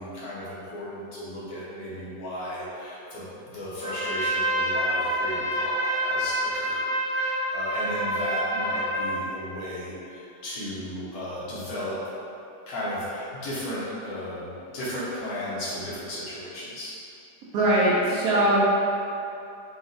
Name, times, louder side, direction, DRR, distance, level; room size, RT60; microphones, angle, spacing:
voice 1, 0.0-12.1 12.7-16.9, left 1 dB, 65° left, -9 dB, 1.3 m, -35 dB
Trumpet, 3.8-9.2, right 1 dB, 45° left, 0.6 m, -27 dB
voice 2, 17.5-18.6, right 1 dB, 65° right, -7 dB, 1.0 m, -21 dB
4.0 x 2.4 x 3.8 m, 2.7 s
omnidirectional pair, 1.9 m